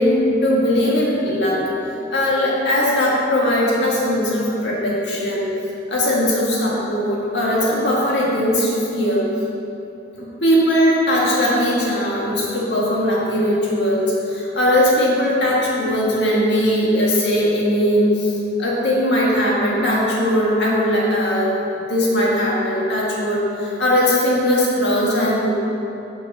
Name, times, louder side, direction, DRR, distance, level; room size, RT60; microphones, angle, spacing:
voice 1, 0.0-1.6 2.1-5.5 5.9-9.2 10.2-18.3 18.6-21.6 21.9-25.5, equal, 75° left, -5 dB, 1.7 m, -19 dB
6.0 x 6.0 x 6.1 m, 2.9 s
head